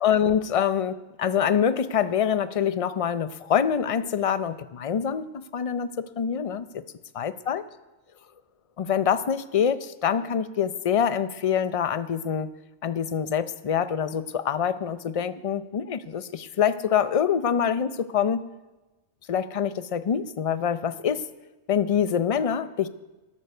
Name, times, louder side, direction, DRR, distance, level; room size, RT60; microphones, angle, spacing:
voice 1, 0.0-6.7 7.2-7.6 8.8-12.5 12.8-18.4 19.3-21.2 21.7-22.9, left 8 dB, 50° left, 13 dB, 0.4 m, -25 dB
12.5 x 12.0 x 6.6 m, 1.1 s
omnidirectional pair, 1.3 m